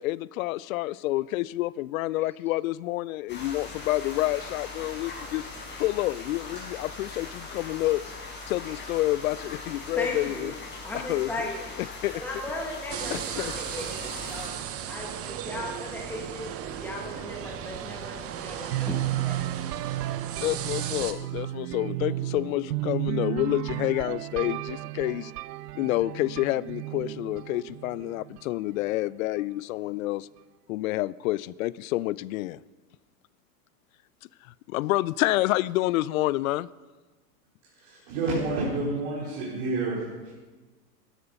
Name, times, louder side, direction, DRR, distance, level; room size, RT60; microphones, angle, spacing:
voice 1, 0.0-5.5 5.8-8.0 8.5-10.5 11.1-11.3 12.0-12.2 13.1-13.6 20.4-25.3 25.7-30.3 30.7-32.6 34.7-36.7, left 17 dB, 60° left, 22 dB, 0.5 m, -28 dB
sound 1, 3.3-14.5, left 3 dB, 20° left, 5.0 m, -40 dB
voice 2, 9.9-10.5 10.8-11.7 12.1-14.5 14.9-19.4, left 1 dB, 5° left, 0 dB, 1.5 m, -37 dB
sound 2, 12.9-21.1, right 9 dB, 30° right, 1.0 m, -36 dB
sound 3, 18.7-28.5, right 16 dB, 70° right, 0.6 m, -33 dB
voice 3, 37.8-40.3, right 2 dB, 50° right, -5 dB, 4.3 m, -29 dB
13.0 x 11.5 x 5.4 m, 1.3 s
hypercardioid pair, 110°, 48 cm